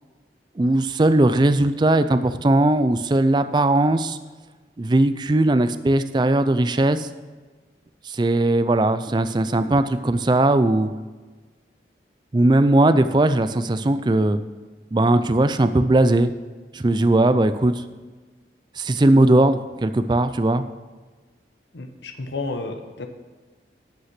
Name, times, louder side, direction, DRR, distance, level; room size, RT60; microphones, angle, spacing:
voice 1, 0.6-4.2 4.8-7.1 8.0-10.9 12.3-14.4 14.9-16.3 16.7-17.8 18.8-20.6, right 2 dB, 25° right, 11 dB, 0.4 m, -19 dB
voice 2, 21.7-23.1, left 3 dB, 90° left, 6 dB, 0.9 m, -31 dB
11.5 x 5.6 x 6.0 m, 1.3 s
head